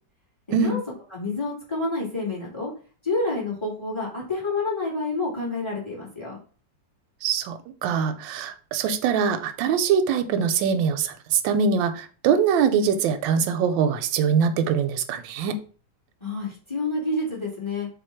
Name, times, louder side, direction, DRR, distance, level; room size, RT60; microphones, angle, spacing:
voice 1, 1.1-2.7 3.0-6.4 16.2-17.9, left 2 dB, 15° left, 1.9 m, -28 dB
voice 2, 7.2-15.6, right 6 dB, 90° right, 1.3 m, -23 dB
3.7 x 2.8 x 4.4 m
omnidirectional pair, 2.0 m